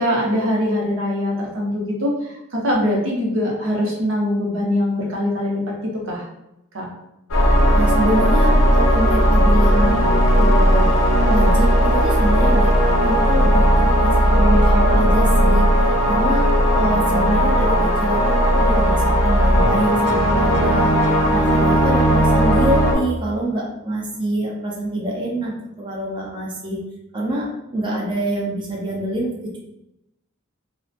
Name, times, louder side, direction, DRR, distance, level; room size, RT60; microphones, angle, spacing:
voice 1, 0.0-6.2 6.7-6.9 14.3-14.8, left 1 dB, 75° right, -2 dB, 0.7 m, -23 dB
sound 1, 7.3-22.9, equal, 85° left, 0.6 m, -16 dB
voice 2, 7.7-10.0 10.3-11.0 11.3-15.7 16.1-20.9 21.3-26.8 27.1-29.6, right 1 dB, 25° right, -2 dB, 0.4 m, -25 dB
2.9 x 2.0 x 2.4 m, 0.87 s
head